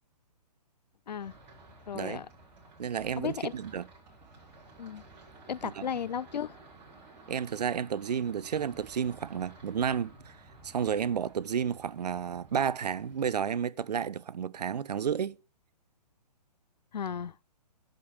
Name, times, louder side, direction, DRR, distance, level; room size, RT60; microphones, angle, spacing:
sound 1, 1.2-13.3, right 2 dB, 25° right, 7.0 m, -54 dB
voice 1, 1.9-2.3 3.2-3.5 4.8-5.0 5.5-6.6 16.9-17.3, left 7 dB, 80° left, 0.6 m, -35 dB
voice 2, 2.8-3.9 5.6-5.9 7.3-10.4 10.6-15.4, right 7 dB, 70° right, 0.7 m, -31 dB
12.0 x 5.3 x 7.0 m
hypercardioid pair, 145°, 21 cm